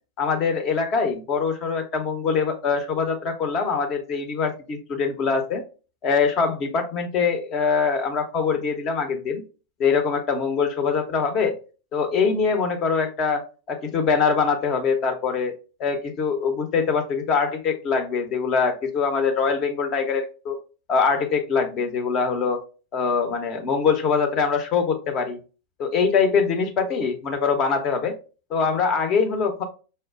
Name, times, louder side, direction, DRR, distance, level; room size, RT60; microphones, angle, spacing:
voice 1, 0.2-5.6 6.0-9.4 9.8-11.6 11.9-15.5 15.8-20.6 20.9-22.6 22.9-25.4 25.8-28.1 28.5-29.6, left 5 dB, 35° left, 4 dB, 0.8 m, -23 dB
5.4 x 2.3 x 2.4 m, 0.34 s
figure-of-eight pair, 90°, 0 cm